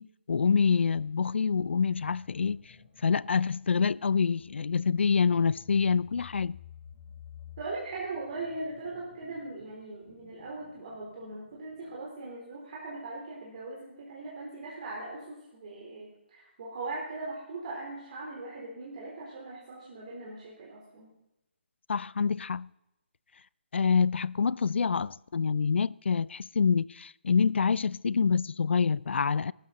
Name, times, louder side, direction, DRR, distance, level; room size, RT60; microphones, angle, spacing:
voice 1, 0.0-2.8 3.0-6.6 21.9-22.7 23.7-29.5, left 5 dB, 75° left, 0.4 m, -26 dB
sound 1, 1.6-12.1, left 8 dB, 30° left, 2.4 m, -53 dB
voice 2, 7.6-21.1, right 2 dB, 40° right, 3.7 m, -40 dB
16.5 x 12.5 x 4.1 m
hypercardioid pair, 165°, 6 cm